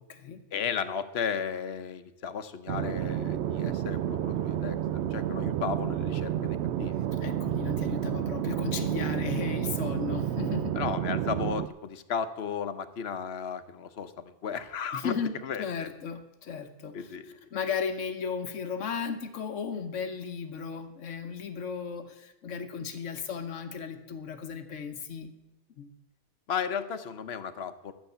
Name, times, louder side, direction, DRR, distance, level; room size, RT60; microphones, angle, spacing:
voice 1, 0.5-4.8 5.1-7.0 10.8-15.1 15.4-15.9 16.9-17.5 26.5-27.9, left 7 dB, 60° left, 11 dB, 1.0 m, -34 dB
sound 1, 2.7-11.7, right 11 dB, 70° right, 0.8 m, -30 dB
voice 2, 7.2-10.8 14.9-25.3 25.7-25.9, left 6 dB, 90° left, 8 dB, 1.3 m, -35 dB
12.5 x 8.1 x 6.8 m, 0.98 s
omnidirectional pair, 1.2 m